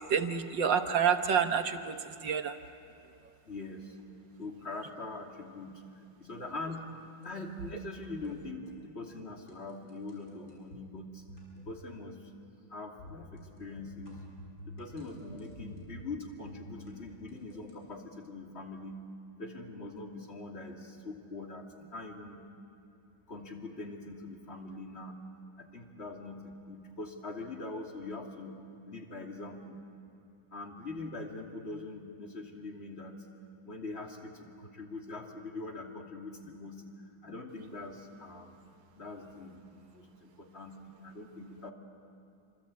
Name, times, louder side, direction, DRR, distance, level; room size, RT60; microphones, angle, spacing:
voice 1, 0.1-2.6, right 7 dB, 70° right, 7 dB, 1.8 m, -28 dB
voice 2, 3.5-4.0 4.4-5.8 6.2-6.9 7.2-11.2 11.7-12.3 12.7-14.2 14.7-19.0 19.4-22.4 23.3-25.2 25.6-28.6 28.9-29.8 30.5-33.2 33.6-38.5 39.0-41.7, left 2 dB, 30° left, 1 dB, 2.9 m, -43 dB
sound 1, 7.0-7.3 8.0-8.4 8.6-8.8 9.1-9.2 9.5-10.8 11.3-11.9 12.1-12.4 13.0-16.1 16.5-17.8, equal, 55° left, 6.8 m, -50 dB
27.0 x 26.0 x 8.5 m, 2.5 s
omnidirectional pair, 2.1 m